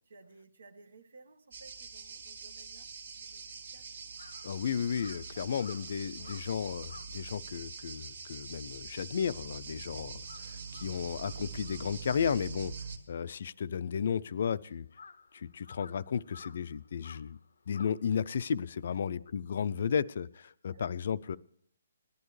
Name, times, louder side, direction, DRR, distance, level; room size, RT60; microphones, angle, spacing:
voice 1, 0.1-3.9 5.3-5.5 6.2-6.4 9.6-9.8 18.9-19.0 20.7-20.9, right 3 dB, 80° right, 7 dB, 1.3 m, -57 dB
sound 1, 1.5-13.0, right 5 dB, 60° right, 1.8 m, -44 dB
Crow, 3.2-9.8 10.1-18.7, left 5 dB, 85° left, 0.6 m, -56 dB
voice 2, 4.4-12.7 13.1-14.9 15.3-17.4 17.7-20.3 20.6-21.4, left 7 dB, 45° left, 17 dB, 0.4 m, -33 dB
18.5 x 11.0 x 3.2 m, 0.66 s
hypercardioid pair, 170°, 0 cm